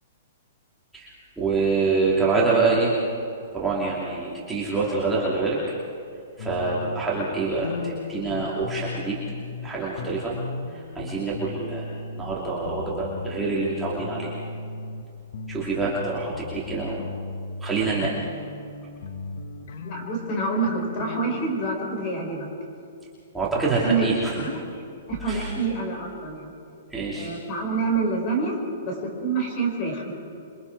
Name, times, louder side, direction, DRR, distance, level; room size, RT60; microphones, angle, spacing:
voice 1, 0.9-3.0 3.5-5.6 6.4-9.2 9.6-10.3 10.7-11.9 12.1-14.3 15.5-17.1 17.6-18.3 23.3-24.3 25.3-25.5 26.9-27.3, right 3 dB, 5° right, -7 dB, 2.6 m, -26 dB
sound 1, 6.4-9.7 10.0-12.4 12.6-15.0 15.3-21.7, left 3 dB, 60° left, 1.5 m, -36 dB
voice 2, 19.8-22.5 23.8-24.1 24.4-24.8 25.1-26.5 27.1-30.1, right 4 dB, 30° left, 1 dB, 5.4 m, -27 dB
28.0 x 23.5 x 4.7 m, 2.6 s
hypercardioid pair, 170°, 0 cm